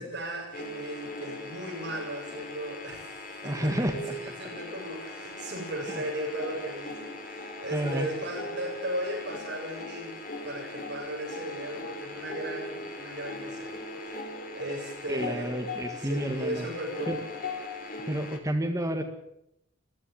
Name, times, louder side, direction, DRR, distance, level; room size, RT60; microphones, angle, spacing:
voice 1, 0.0-3.7 4.1-14.2 14.5-15.5 15.9-17.2, right 1 dB, 60° right, -3 dB, 7.8 m, -37 dB
sound 1, 0.5-18.4, left 2 dB, 45° left, 3.5 m, -39 dB
voice 2, 3.4-4.2 5.9-6.0 7.7-8.1 15.1-16.7 17.1-17.2 18.1-19.0, right 1 dB, 15° right, 6 dB, 1.8 m, -30 dB
22.5 x 15.5 x 8.7 m, 0.80 s
head